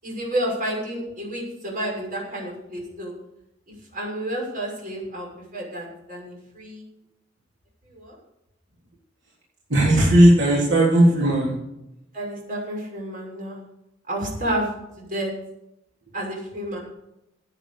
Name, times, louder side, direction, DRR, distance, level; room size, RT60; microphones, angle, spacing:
voice 1, 0.0-3.1 3.9-6.8 7.9-8.2 12.1-13.6 14.1-14.7 15.0-15.3 16.1-16.8, right 1 dB, 45° right, -2 dB, 6.3 m, -30 dB
voice 2, 9.7-11.5, right 1 dB, 65° right, -5 dB, 3.4 m, -16 dB
15.5 x 9.0 x 6.7 m, 0.86 s
head